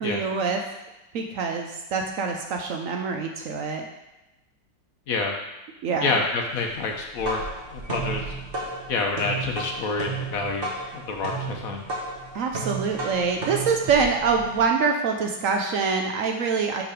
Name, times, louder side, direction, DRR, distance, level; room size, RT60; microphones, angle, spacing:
voice 1, 0.0-0.6 1.1-3.9 5.8-6.2 12.3-16.8, right 5 dB, 75° right, 3 dB, 0.7 m, -25 dB
voice 2, 5.1-5.4 6.0-7.4 7.7-8.4 8.9-11.8, left 3 dB, 60° left, 2 dB, 1.1 m, -28 dB
sound 1, 6.9-14.7, right 3 dB, 35° right, 1.1 m, -33 dB
5.7 x 5.0 x 5.1 m, 0.99 s
omnidirectional pair, 2.1 m